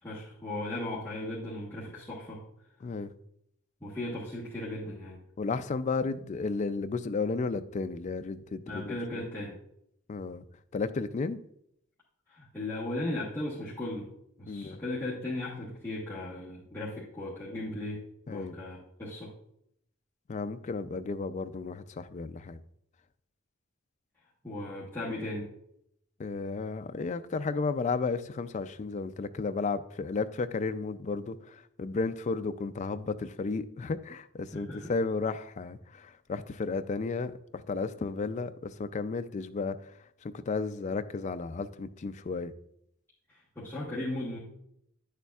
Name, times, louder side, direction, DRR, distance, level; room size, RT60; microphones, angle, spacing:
voice 1, 0.0-2.4 3.8-5.2 8.6-9.6 12.3-14.1 14.4-19.3 24.4-25.5 34.5-34.9 43.3-44.4, left 1 dB, 10° left, -9 dB, 1.1 m, -37 dB
voice 2, 2.8-3.1 5.4-9.3 10.1-10.4 10.7-11.4 14.5-14.8 18.3-18.6 20.3-22.6 26.2-39.9 40.2-42.5, left 4 dB, 35° left, 11 dB, 0.3 m, -33 dB
9.1 x 6.7 x 2.3 m, 0.74 s
head